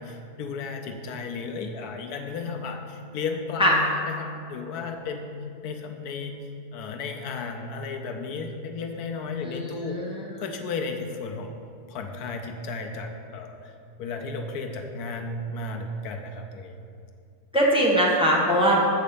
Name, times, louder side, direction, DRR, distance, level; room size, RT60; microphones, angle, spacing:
voice 1, 0.0-5.4 5.6-6.3 6.7-10.1 10.4-11.5 11.9-13.7 14.0-16.8, left 4 dB, 80° left, 4 dB, 1.2 m, -34 dB
voice 2, 9.4-10.2 17.5-18.8, equal, 5° right, -4 dB, 1.1 m, -21 dB
7.4 x 5.2 x 6.9 m, 2.5 s
omnidirectional pair, 1.6 m